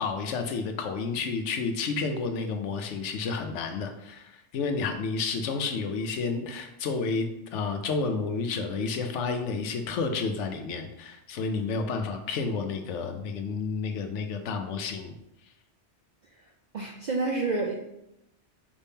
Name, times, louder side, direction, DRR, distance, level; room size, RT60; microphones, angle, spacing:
voice 1, 0.0-15.1, left 4 dB, 80° left, 5 dB, 0.9 m, -30 dB
voice 2, 16.7-17.7, right 3 dB, 65° right, 0 dB, 0.4 m, -28 dB
5.2 x 2.7 x 3.5 m, 0.84 s
omnidirectional pair, 1.2 m